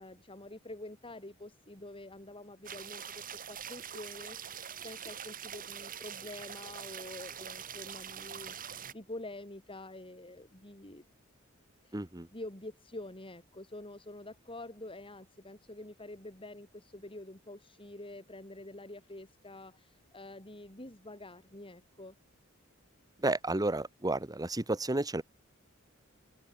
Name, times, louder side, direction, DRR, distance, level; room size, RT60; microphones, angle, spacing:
voice 1, 0.0-8.6 8.9-11.0 11.8-12.1 12.3-22.2, left 1 dB, 25° left, 6.3 m, -47 dB
sound 1, 2.6-8.9, right 8 dB, 40° right, 3.3 m, -44 dB
voice 2, 11.9-12.3 23.2-25.2, right 2 dB, 20° right, 1.3 m, -31 dB
open air
head